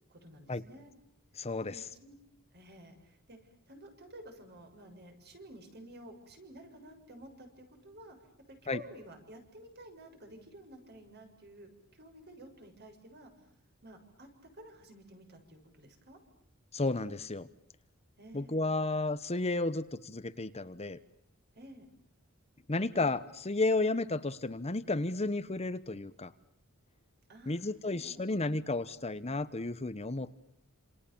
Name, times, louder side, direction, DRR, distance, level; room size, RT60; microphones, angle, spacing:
voice 1, 0.1-0.9 1.6-2.2 2.5-13.3 13.8-16.2 18.2-19.0 21.6-21.9 27.3-28.2, right 1 dB, 50° right, 6 dB, 6.9 m, -52 dB
voice 2, 1.4-1.8 8.7-8.8 16.7-17.5 18.3-21.0 22.7-26.3 27.5-30.5, left 2 dB, 30° left, 13 dB, 1.1 m, -32 dB
29.0 x 28.0 x 7.2 m, 0.70 s
head